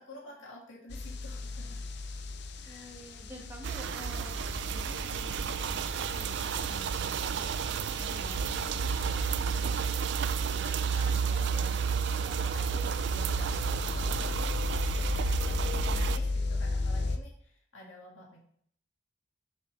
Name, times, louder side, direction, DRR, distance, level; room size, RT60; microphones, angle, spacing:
voice 1, 0.0-1.8 2.6-3.0 8.0-14.1 14.7-18.4, left 1 dB, 70° left, -2 dB, 2.1 m, -49 dB
sound 1, 0.9-17.2, left 3 dB, 55° left, 0.6 m, -36 dB
voice 2, 2.6-7.4, equal, 10° right, -3 dB, 1.6 m, -50 dB
sound 2, 3.6-16.2, right 7 dB, 55° right, 0.3 m, -31 dB
8.7 x 6.9 x 3.3 m, 0.62 s
head